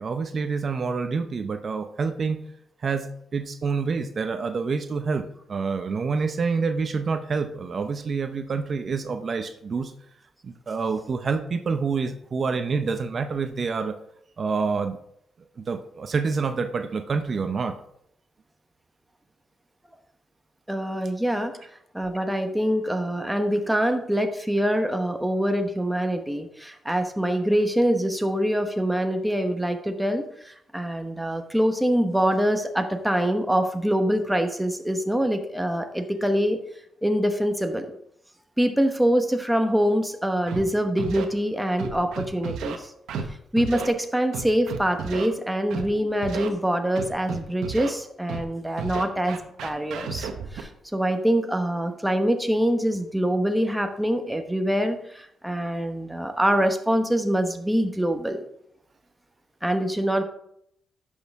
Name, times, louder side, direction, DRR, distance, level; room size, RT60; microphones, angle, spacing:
voice 1, 0.0-2.4 2.8-9.9 10.4-13.9 14.4-15.0 15.6-17.7, right 5 dB, 45° right, 7 dB, 0.7 m, -27 dB
voice 2, 20.7-21.6 21.9-36.6 37.0-37.9 38.6-42.9 43.5-58.4 59.6-60.2, equal, 5° right, 6 dB, 1.0 m, -24 dB
Scratching (performance technique), 40.5-40.6 41.0-41.2 41.8-42.8 43.1-43.3 43.6-43.9 44.3-45.3 45.7-45.9 46.2-46.5 47.0-47.9 48.3-48.4 48.8-50.6, right 6 dB, 90° right, 1.0 m, -32 dB
11.0 x 6.4 x 3.6 m, 0.73 s
cardioid pair, 95°, 0 cm